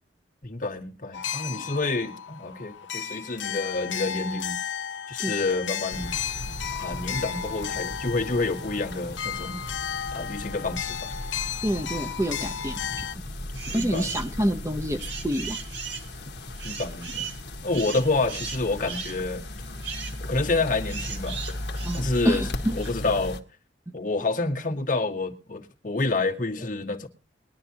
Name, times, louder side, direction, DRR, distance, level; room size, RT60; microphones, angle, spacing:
voice 1, 0.4-4.6 5.1-6.2 6.7-9.6 10.1-11.1 13.7-14.3 16.6-17.3 17.6-19.4 20.2-21.4 21.9-22.5 22.7-23.4 23.9-27.1, left 3 dB, 45° left, 2.0 m, -28 dB
sound 1, 1.1-13.2, left 8 dB, 80° left, 0.9 m, -34 dB
sound 2, 5.9-23.4, left 1 dB, 65° left, 1.7 m, -37 dB
voice 2, 11.6-13.1 13.7-15.6 21.8-22.8, equal, 15° right, 0.9 m, -27 dB
sound 3, 13.5-14.3 14.7-22.9, right 6 dB, 70° right, 2.2 m, -38 dB
22.0 x 11.0 x 2.9 m
head